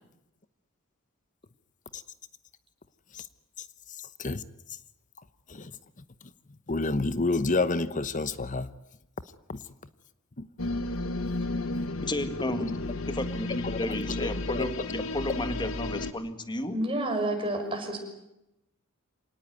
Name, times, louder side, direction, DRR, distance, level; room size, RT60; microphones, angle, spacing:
voice 1, 6.7-8.7 9.5-9.6 10.4-10.5 13.6-14.7, left 3 dB, 40° left, 14 dB, 0.9 m, -29 dB
sound 1, 10.6-16.1, left 2 dB, 85° left, 1.6 m, -33 dB
voice 2, 12.0-12.8 13.1-16.8, left 1 dB, 20° left, 9 dB, 1.9 m, -32 dB
voice 3, 16.7-18.0, right 1 dB, 25° right, 3 dB, 6.1 m, -29 dB
26.5 x 18.5 x 9.4 m, 0.90 s
head